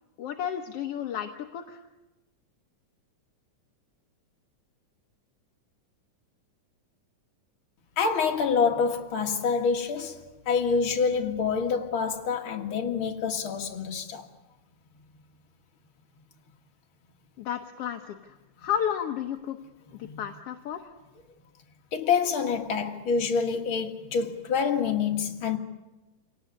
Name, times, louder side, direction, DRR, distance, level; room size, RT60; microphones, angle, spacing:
voice 1, 0.2-1.8 17.4-19.6 19.9-20.9, left 9 dB, 60° left, 1.8 m, -32 dB
voice 2, 8.0-14.2 20.0-20.2 21.9-25.6, left 5 dB, 45° left, 2.4 m, -27 dB
29.0 x 18.0 x 9.8 m
omnidirectional pair, 3.6 m